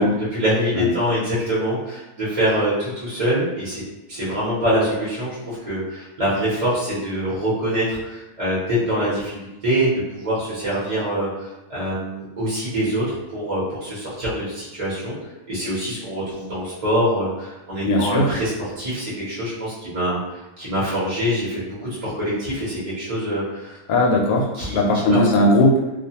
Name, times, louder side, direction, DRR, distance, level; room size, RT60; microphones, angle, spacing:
voice 1, 0.0-3.8 4.1-15.2 15.5-18.5 18.8-20.2 20.6-23.8 24.5-25.2, equal, 30° right, -8 dB, 0.7 m, -24 dB
voice 2, 17.8-18.3 23.9-25.8, left 1 dB, 75° left, 0 dB, 1.0 m, -18 dB
2.4 x 2.3 x 2.8 m, 1.0 s
omnidirectional pair, 1.6 m